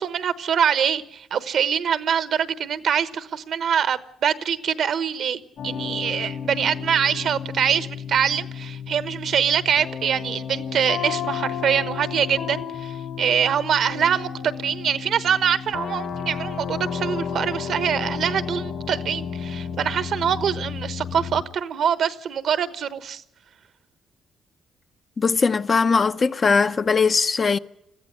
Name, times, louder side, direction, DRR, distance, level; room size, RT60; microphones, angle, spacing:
voice 1, 0.0-23.2, right 8 dB, 65° right, 1.1 m, -24 dB
sound 1, 5.6-21.4, left 7 dB, 70° left, 4.1 m, -32 dB
voice 2, 25.2-27.6, left 5 dB, 40° left, 0.7 m, -20 dB
21.0 x 14.5 x 9.8 m
cardioid pair, 90°, 0 cm